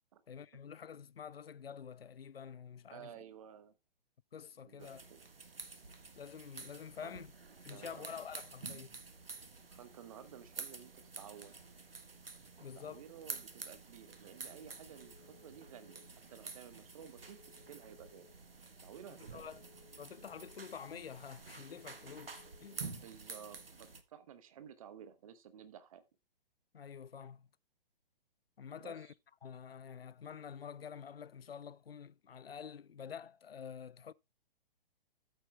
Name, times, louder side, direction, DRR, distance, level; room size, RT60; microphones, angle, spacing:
voice 1, 0.3-3.1 4.3-5.0 6.2-7.3 7.6-9.0 12.6-13.0 19.3-19.6 20.0-22.4 22.6-22.8 26.7-27.5 28.6-29.1 29.4-34.1, left 7 dB, 80° left, 0.5 m, -48 dB
voice 2, 2.9-3.7 4.6-5.2 7.0-7.2 7.7-8.1 9.7-11.6 12.7-18.3 18.8-19.6 22.7-26.0 28.8-29.1, right 9 dB, 35° right, 1.2 m, -54 dB
sound 1, 4.8-24.0, right 4 dB, 75° right, 1.4 m, -50 dB
Telephone, 15.0-16.1 17.2-18.3 19.5-20.6 21.8-22.9, left 11 dB, 60° left, 1.0 m, -64 dB
14.0 x 8.5 x 2.2 m
figure-of-eight pair, 125°, 29 cm